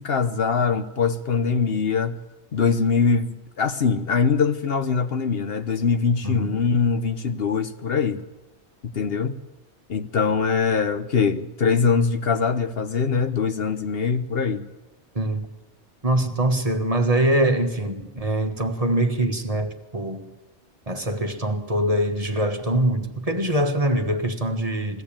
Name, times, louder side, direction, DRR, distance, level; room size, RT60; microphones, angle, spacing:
voice 1, 0.0-2.2 2.5-8.2 8.8-9.4 9.9-14.7, left 5 dB, 60° left, 1.1 m, -22 dB
voice 2, 6.2-6.6 15.2-15.5 16.0-20.2 20.9-25.0, right 1 dB, 30° right, 1.6 m, -23 dB
21.5 x 16.0 x 8.8 m
omnidirectional pair, 1.2 m